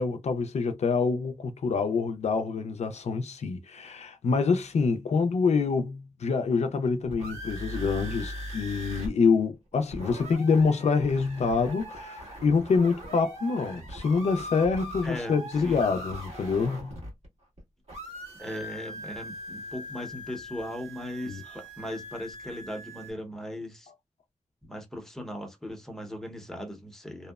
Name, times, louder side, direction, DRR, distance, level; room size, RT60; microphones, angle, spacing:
voice 1, 0.0-17.0 21.3-21.4, left 4 dB, 70° left, 0.4 m, -26 dB
sound 1, 6.9-9.1 9.4-9.5 9.7-17.6 17.9-23.1, equal, 65° right, 1.4 m, -40 dB
voice 2, 15.0-15.9 18.4-23.9 24.6-27.3, left 1 dB, 5° left, 0.7 m, -38 dB
2.7 x 2.0 x 2.3 m
wide cardioid pair, 95°, 12 cm